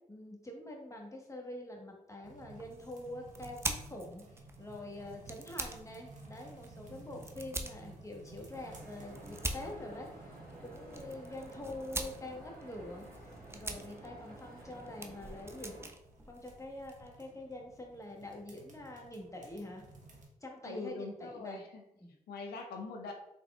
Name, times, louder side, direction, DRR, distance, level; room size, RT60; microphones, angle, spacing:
voice 1, 0.1-10.3 10.6-13.1 13.5-15.7 16.3-19.8 20.4-21.6 22.0-22.1, left 1 dB, 20° left, 1 dB, 1.1 m, -45 dB
sound 1, 2.2-20.2, right 2 dB, 50° right, 1.2 m, -56 dB
sound 2, 2.5-17.1, right 2 dB, 15° right, 0.5 m, -45 dB
sound 3, 8.5-15.9, right 2 dB, 70° right, 1.4 m, -52 dB
voice 2, 20.6-21.8 22.3-23.1, left 3 dB, 85° left, 3 dB, 0.6 m, -42 dB
4.0 x 3.5 x 2.3 m, 0.84 s
supercardioid pair, 45°, 16 cm